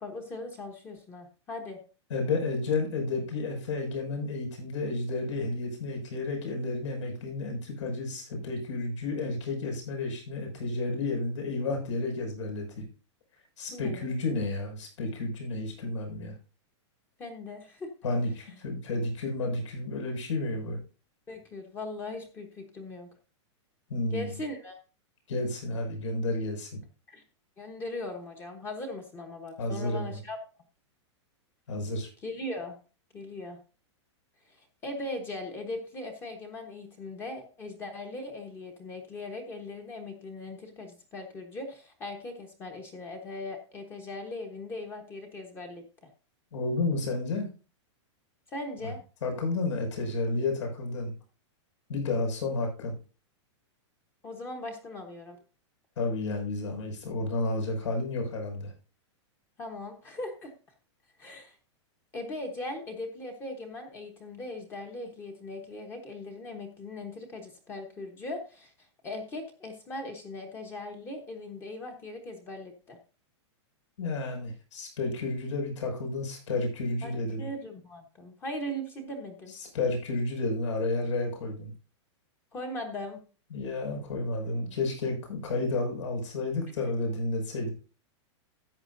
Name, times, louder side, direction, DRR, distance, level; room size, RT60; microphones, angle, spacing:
voice 1, 0.0-1.8 13.7-14.1 17.2-17.9 21.3-23.1 24.1-24.8 27.1-27.2 27.6-30.4 32.2-32.8 33.1-33.6 34.4-45.8 48.5-49.0 54.2-55.4 59.6-60.5 61.2-61.6 62.1-73.0 77.0-77.1 77.4-79.5 82.5-83.2, left 2 dB, 15° left, 4 dB, 1.1 m, -39 dB
voice 2, 2.1-12.8 13.6-16.3 18.0-20.8 23.9-24.3 25.3-26.7 29.6-30.2 31.7-32.1 46.5-47.5 48.8-48.9 49.2-51.1 51.9-52.9 56.0-58.7 74.0-77.5 79.7-81.7 83.5-87.7, left 2 dB, 80° left, 2 dB, 6.0 m, -31 dB
13.5 x 9.0 x 2.6 m, 0.34 s
supercardioid pair, 175°, 15 cm